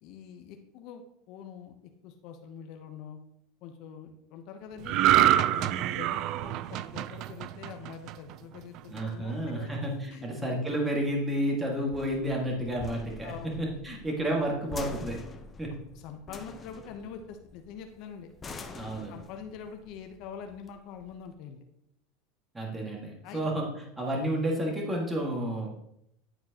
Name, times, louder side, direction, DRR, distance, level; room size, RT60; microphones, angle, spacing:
voice 1, 0.0-1.7 2.0-3.2 3.6-9.7 10.1-10.2 13.2-13.8 15.9-18.3 18.9-21.6 23.2-23.4, left 7 dB, 60° left, 6 dB, 0.8 m, -45 dB
sound 1, 4.8-8.3 8.7-9.0, right 12 dB, 55° right, 0.3 m, -26 dB
sound 2, 8.3-21.3, left 3 dB, 25° left, 0.8 m, -47 dB
voice 2, 8.9-13.3 13.6-15.2 15.6-15.7 18.7-19.1 22.5-23.7 24.0-25.7, right 1 dB, 15° right, -1 dB, 1.7 m, -31 dB
10.5 x 4.5 x 2.9 m, 0.77 s
supercardioid pair, 105°, 0 cm